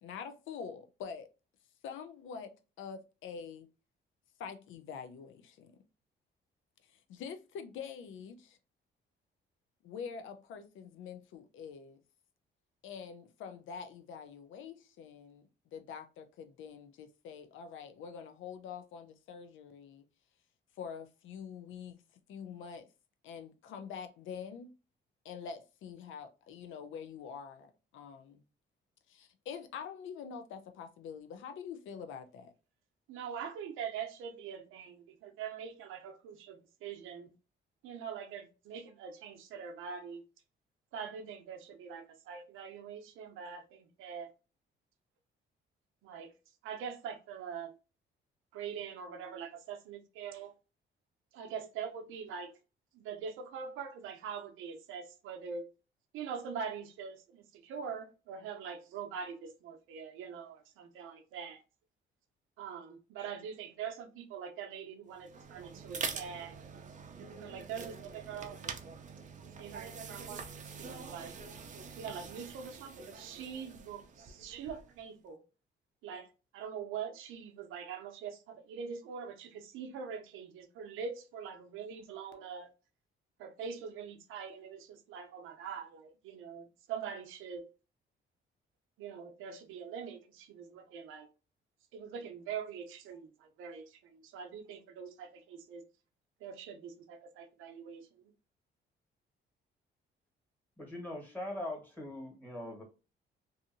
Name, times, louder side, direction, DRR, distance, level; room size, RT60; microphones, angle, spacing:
voice 1, 0.0-1.3 1.8-3.7 4.4-5.7 7.1-8.6 9.8-12.0 12.8-20.0 20.8-22.0 22.3-22.9 23.2-24.7 25.2-28.4 29.1-32.5, left 6 dB, 80° left, 0.5 m, -45 dB
voice 2, 33.1-37.3 37.8-40.2 40.9-44.3 46.0-46.3 46.6-47.7 48.5-50.5 51.3-52.5 52.9-55.7 56.1-61.6 62.6-66.6 67.4-68.7 69.4-71.4 72.0-75.4 76.0-76.3 76.5-82.7 83.4-87.7 89.0-91.3 91.9-95.8 96.4-98.2, right 7 dB, 90° right, 0.6 m, -43 dB
sound 1, 65.1-75.0, right 5 dB, 40° right, 0.5 m, -45 dB
voice 3, 100.8-102.8, left 1 dB, 10° left, 1.5 m, -41 dB
2.6 x 2.5 x 2.5 m
cardioid pair, 90°, 20 cm